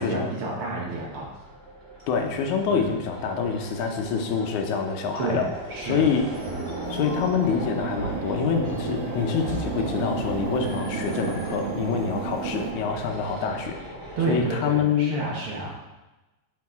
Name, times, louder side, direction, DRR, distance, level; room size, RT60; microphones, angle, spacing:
voice 1, 0.0-1.3 2.7-2.9 5.2-6.1 14.2-15.8, right 3 dB, 60° right, -3 dB, 1.6 m, -30 dB
sound 1, 0.8-14.4, right 1 dB, 25° right, 1.5 m, -39 dB
voice 2, 2.1-5.5 5.8-6.2 6.9-13.8 14.3-15.2, left 6 dB, 90° left, 4 dB, 2.2 m, -26 dB
sound 2, 6.1-12.7, right 6 dB, 85° right, 1.3 m, -33 dB
sound 3, 6.5-12.5, left 3 dB, 65° left, 1.4 m, -37 dB
7.7 x 4.7 x 3.5 m, 1.1 s
omnidirectional pair, 3.3 m